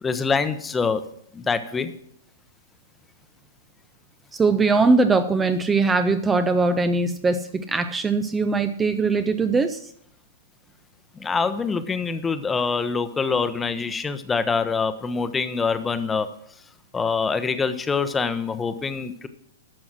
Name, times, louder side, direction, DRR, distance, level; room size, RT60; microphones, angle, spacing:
voice 1, 0.0-1.0 1.3-1.9 11.2-16.3 16.9-19.3, left 5 dB, 15° left, 11 dB, 0.9 m, -25 dB
voice 2, 4.3-9.9, right 3 dB, 15° right, 9 dB, 0.5 m, -21 dB
12.0 x 6.2 x 6.1 m, 0.70 s
figure-of-eight pair, 110°, 0 cm